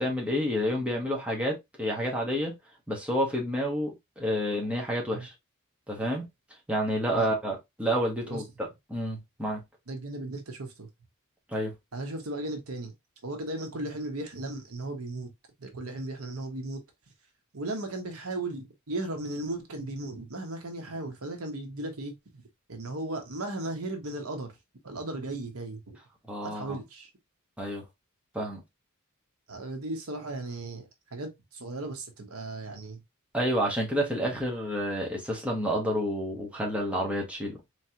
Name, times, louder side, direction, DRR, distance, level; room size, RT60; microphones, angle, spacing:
voice 1, 0.0-2.5 2.9-5.3 5.9-6.2 6.7-9.6 11.5-11.7 26.3-26.8 27.6-27.8 28.3-28.6 33.3-37.6, equal, 5° right, 1.2 m, -29 dB
voice 2, 9.9-10.9 11.9-12.9 13.2-15.3 15.6-16.8 17.5-22.2 22.7-24.5 24.8-25.8 26.4-27.1 29.5-33.0, right 2 dB, 85° right, 1.1 m, -36 dB
4.0 x 3.1 x 2.8 m
head